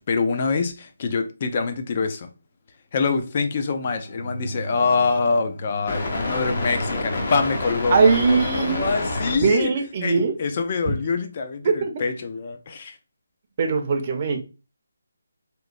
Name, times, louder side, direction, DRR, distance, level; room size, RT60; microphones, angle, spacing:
voice 1, 0.0-2.3 2.9-9.7 10.0-13.0, left 4 dB, 35° left, 0.3 m, -25 dB
sound 1, 3.8-9.4, left 2 dB, 50° left, 0.7 m, -29 dB
voice 2, 7.9-8.9 9.3-10.3 11.6-12.0 13.6-14.4, right 5 dB, 30° right, 0.5 m, -21 dB
2.9 x 2.1 x 2.4 m
figure-of-eight pair, 165°, 0 cm